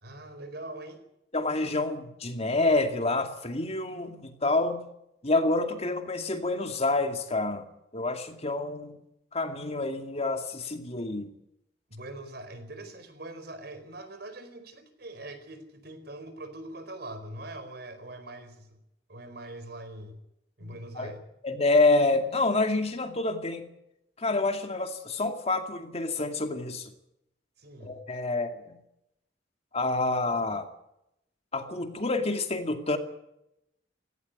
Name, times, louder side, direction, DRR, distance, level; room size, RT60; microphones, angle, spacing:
voice 1, 0.0-1.0 11.9-18.8 19.1-20.2 20.6-21.2 27.6-28.0, right 1 dB, 65° right, 9 dB, 4.5 m, -42 dB
voice 2, 1.3-4.8 5.2-7.7 7.9-9.0 9.3-11.3 20.6-21.1 21.4-23.7 24.2-26.9 27.8-28.8 29.7-30.7 31.5-33.0, left 2 dB, 35° left, 6 dB, 2.3 m, -28 dB
17.0 x 17.0 x 9.5 m, 0.82 s
head